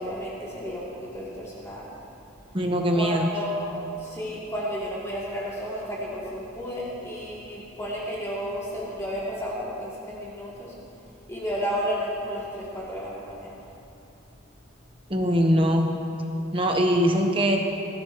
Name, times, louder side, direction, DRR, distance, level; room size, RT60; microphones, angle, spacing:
voice 1, 0.0-1.8 2.9-10.7 11.3-13.6, equal, 15° left, -8 dB, 3.1 m, -32 dB
voice 2, 2.5-3.3 15.1-15.9 16.5-17.6, equal, 25° right, 2 dB, 1.2 m, -22 dB
21.5 x 15.5 x 3.2 m, 2.8 s
head